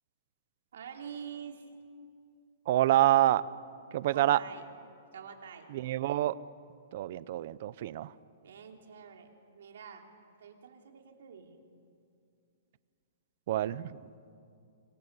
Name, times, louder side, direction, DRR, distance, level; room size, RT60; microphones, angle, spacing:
voice 1, 0.7-1.7 4.1-4.7 5.1-5.7 8.4-9.3 9.5-10.1 10.4-11.6, right 7 dB, 65° right, 3 dB, 3.2 m, -46 dB
voice 2, 2.7-3.4 3.9-4.4 5.7-6.4 6.9-8.1 13.5-13.9, right 14 dB, 35° right, 18 dB, 0.6 m, -26 dB
26.5 x 24.5 x 6.9 m, 2.4 s
hypercardioid pair, 180°, 0 cm